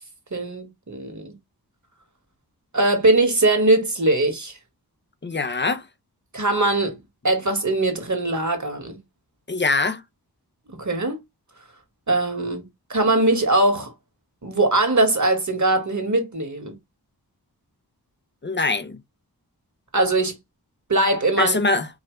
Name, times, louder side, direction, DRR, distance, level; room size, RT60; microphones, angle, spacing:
voice 1, 0.3-1.3 2.7-4.6 6.3-7.0 7.2-9.0 10.7-11.2 12.1-13.9 14.4-16.7 19.9-20.4 20.9-21.6, right 2 dB, 45° right, 1.7 m, -21 dB
voice 2, 5.2-5.8 9.5-10.0 18.4-19.0 21.4-21.9, left 3 dB, 30° left, 0.6 m, -23 dB
4.8 x 2.9 x 3.1 m
wide cardioid pair, 60°, 39 cm